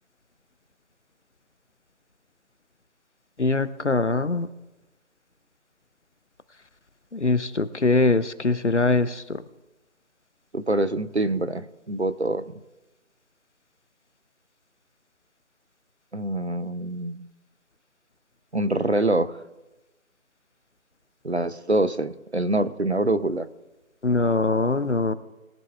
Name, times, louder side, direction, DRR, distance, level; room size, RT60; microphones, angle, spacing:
voice 1, 3.4-4.5 7.1-9.4 24.0-25.1, left 3 dB, 55° left, 15 dB, 0.7 m, -22 dB
voice 2, 10.5-12.5 16.1-17.3 18.5-19.4 21.2-23.5, right 2 dB, 55° right, 14 dB, 0.6 m, -25 dB
21.0 x 10.5 x 2.4 m, 1.0 s
figure-of-eight pair, 175°, 41 cm